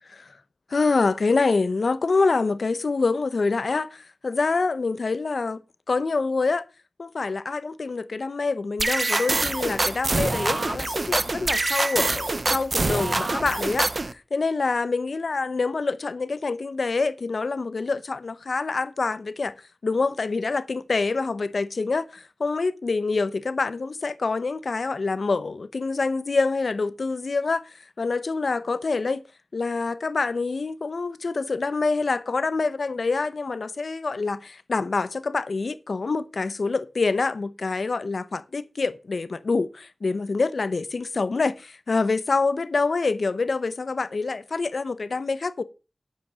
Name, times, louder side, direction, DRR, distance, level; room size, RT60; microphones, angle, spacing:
voice 1, 0.7-5.6 5.9-6.6 7.0-19.5 19.8-29.2 29.5-45.6, left 4 dB, 90° left, 0.7 m, -26 dB
sound 1, 8.8-14.1, right 2 dB, 60° right, 0.8 m, -25 dB
9.8 x 7.7 x 6.2 m
wide cardioid pair, 45°, 0 cm